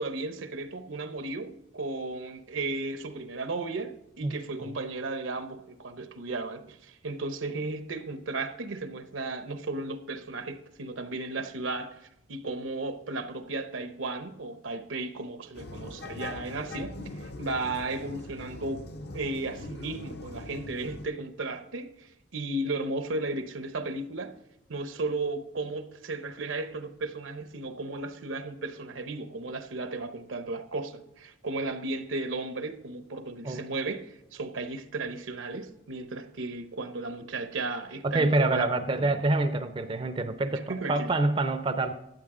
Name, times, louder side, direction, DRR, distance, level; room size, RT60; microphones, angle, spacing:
voice 1, 0.0-12.0 12.3-18.9 19.1-24.4 24.7-39.1 40.7-41.1, right 2 dB, 80° right, 0.8 m, -35 dB
sound 1, 15.5-21.1, left 2 dB, 55° left, 0.6 m, -41 dB
voice 2, 38.0-41.9, right 2 dB, 25° right, 0.4 m, -27 dB
12.0 x 8.7 x 3.7 m
head